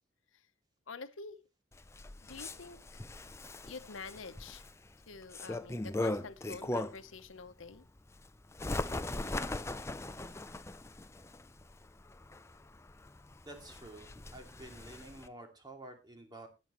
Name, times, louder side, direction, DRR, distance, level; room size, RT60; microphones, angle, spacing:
voice 1, 0.9-1.4 2.3-3.0 3.7-4.6 5.1-7.8, left 4 dB, 85° left, 12 dB, 0.9 m, -47 dB
Bird, 1.7-7.2 7.6-15.3, left 2 dB, 15° left, 0.5 m, -40 dB
voice 2, 13.5-16.5, right 1 dB, 20° right, 3 dB, 2.6 m, -50 dB
19.0 x 7.8 x 3.0 m, 0.28 s
head